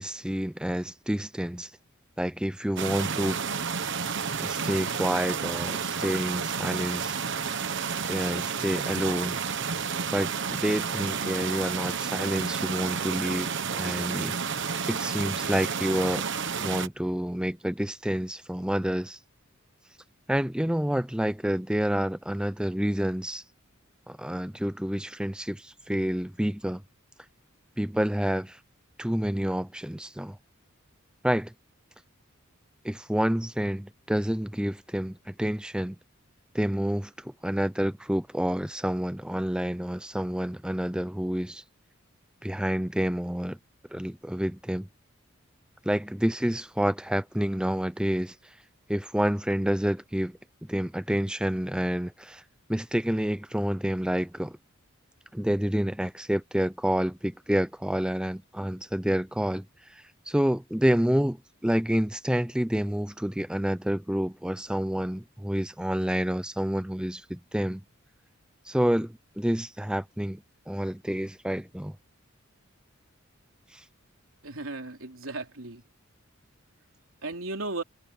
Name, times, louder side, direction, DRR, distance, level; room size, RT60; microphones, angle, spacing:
voice 1, 0.0-1.7 2.2-3.4 4.4-7.2 8.1-9.4 10.1-14.4 14.9-16.3 16.6-19.2 20.3-23.4 24.1-26.8 27.8-28.6 29.0-30.4 31.2-31.5 32.8-36.0 36.5-41.6 42.4-43.6 43.9-44.9 45.8-48.5 48.9-50.4 50.7-52.4 52.7-54.6 55.3-61.4 61.6-67.8 68.7-72.0 73.7-73.8, equal, 5° right, 0.6 m, -28 dB
sound 1, 2.8-16.9, right 6 dB, 60° right, 1.2 m, -31 dB
voice 2, 74.4-75.8 77.2-77.8, right 2 dB, 80° right, 3.3 m, -35 dB
head